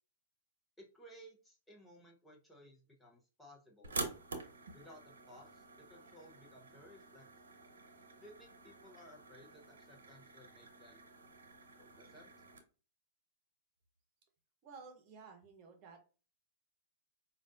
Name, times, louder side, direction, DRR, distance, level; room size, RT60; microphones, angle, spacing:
voice 1, 0.8-3.9 4.7-7.2 8.2-11.0 11.8-12.3, equal, 5° left, -2 dB, 1.0 m, -58 dB
sound 1, 3.8-12.6, right 3 dB, 85° right, 0.8 m, -48 dB
voice 2, 14.6-16.0, right 5 dB, 40° right, 5 dB, 1.1 m, -54 dB
4.8 x 2.6 x 2.6 m, 0.34 s
hypercardioid pair, 115°, 0 cm